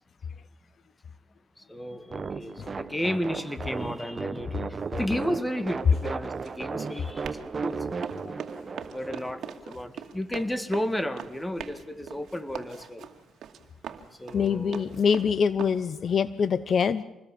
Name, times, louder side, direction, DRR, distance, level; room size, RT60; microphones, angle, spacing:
voice 1, 1.7-4.7 4.9-7.8 8.9-13.0 14.2-14.9, left 1 dB, 10° left, 12 dB, 2.1 m, -33 dB
sound 1, 2.1-9.6, right 4 dB, 35° right, 1.4 m, -35 dB
Run, 5.3-15.8, right 8 dB, 65° right, 2.3 m, -43 dB
voice 2, 14.3-17.0, left 6 dB, 50° left, 17 dB, 0.9 m, -25 dB
26.5 x 20.5 x 7.2 m, 0.99 s
cardioid pair, 90°, 0 cm